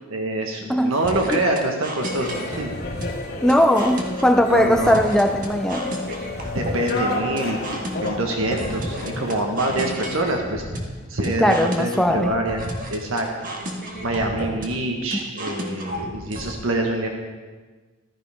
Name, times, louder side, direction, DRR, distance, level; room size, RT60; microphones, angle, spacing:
voice 1, 0.1-2.7 4.4-5.0 6.1-6.2 6.4-10.6 11.1-13.3 14.0-17.1, right 1 dB, 80° right, 2 dB, 1.5 m, -25 dB
sound 1, 1.0-16.5, equal, 40° right, 1.6 m, -33 dB
sound 2, 2.0-10.3, left 2 dB, 50° left, 2.1 m, -32 dB
voice 2, 3.4-6.0 11.4-12.3 15.1-15.2, equal, 5° left, 6 dB, 0.5 m, -19 dB
14.5 x 14.0 x 3.6 m, 1.3 s
head